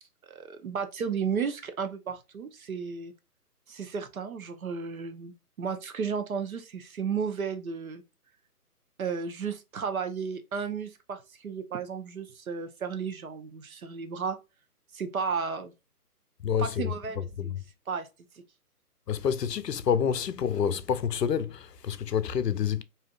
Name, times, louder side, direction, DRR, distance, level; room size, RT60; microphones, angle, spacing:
voice 1, 0.2-3.1 3.7-8.0 9.0-14.4 14.9-15.7 16.6-17.5 17.9-18.1, right 6 dB, 60° right, 0.8 m, -33 dB
voice 2, 16.4-16.9 17.4-17.6 19.1-22.8, left 8 dB, 90° left, 0.6 m, -28 dB
3.2 x 2.7 x 2.3 m
figure-of-eight pair, 145°, 47 cm